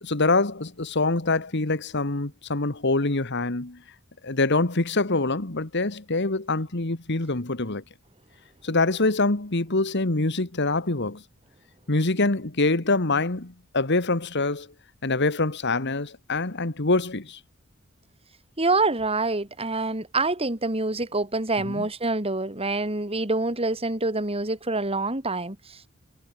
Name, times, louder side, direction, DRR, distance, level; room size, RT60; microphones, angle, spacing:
voice 1, 0.0-3.8 4.2-7.8 8.6-11.2 11.9-14.7 15.0-17.4 21.7-21.9, left 3 dB, 55° left, 1.8 m, -25 dB
voice 2, 18.6-25.9, right 2 dB, 30° right, 3.6 m, -26 dB
head